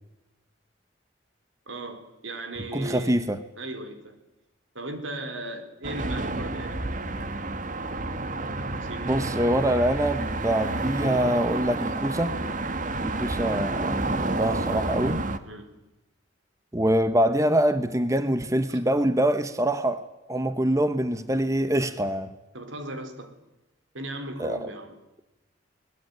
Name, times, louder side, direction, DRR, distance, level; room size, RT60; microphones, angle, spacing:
voice 1, 1.7-3.2 3.6-4.2 4.7-7.3 8.8-9.5 15.4-15.8 18.7-18.8 22.5-23.3 23.9-25.0, right 1 dB, 80° right, 8 dB, 3.8 m, -37 dB
voice 2, 2.7-3.4 9.1-12.5 13.0-15.2 16.7-22.3 24.4-24.6, right 1 dB, 15° right, 11 dB, 0.9 m, -25 dB
sound 1, 5.8-15.4, right 2 dB, 40° right, 1.4 m, -30 dB
21.5 x 20.5 x 9.4 m, 1.0 s
head